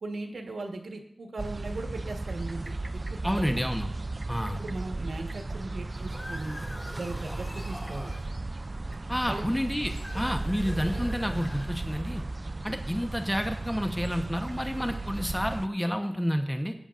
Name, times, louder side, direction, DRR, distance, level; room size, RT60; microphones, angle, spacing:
voice 1, 0.0-2.7 3.1-3.6 4.6-6.6 6.9-8.1 9.3-9.5, right 2 dB, 90° right, 4 dB, 1.2 m, -38 dB
sound 1, 1.4-15.7, right 2 dB, 40° right, 0.3 m, -35 dB
voice 2, 3.2-3.9 4.3-4.6 9.1-12.2 12.6-16.7, equal, 5° left, 5 dB, 0.9 m, -29 dB
sound 2, 5.9-8.3 9.7-12.2, left 1 dB, 20° left, 3.6 m, -44 dB
16.5 x 8.9 x 2.5 m, 0.72 s
wide cardioid pair, 65°, 0 cm